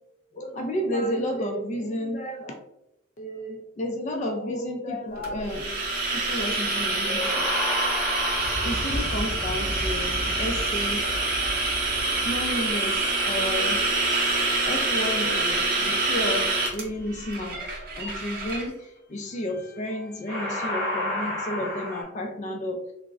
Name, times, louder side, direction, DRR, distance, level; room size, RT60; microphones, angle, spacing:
voice 1, 0.3-2.5 3.2-14.1 14.6-22.9, left 1 dB, 35° left, 3 dB, 0.3 m, -32 dB
sound 1, 5.2-18.7, right 2 dB, 45° right, 0.6 m, -26 dB
sound 2, 7.2-14.4 19.6-19.9 20.3-22.0, left 1 dB, 10° left, 1.3 m, -32 dB
3.4 x 2.0 x 2.3 m, 0.85 s
head